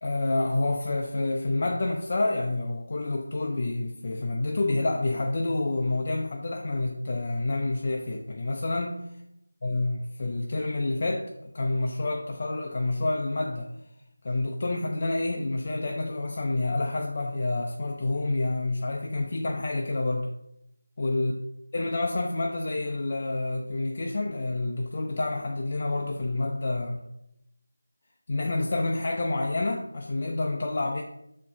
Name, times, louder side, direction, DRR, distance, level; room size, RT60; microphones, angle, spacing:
voice 1, 0.0-9.0 9.6-13.7 14.2-20.3 21.0-21.3 21.7-27.0 28.3-31.0, left 2 dB, 30° left, 0 dB, 0.4 m, -28 dB
6.3 x 4.4 x 3.6 m, 0.80 s
figure-of-eight pair, 175°, 0 cm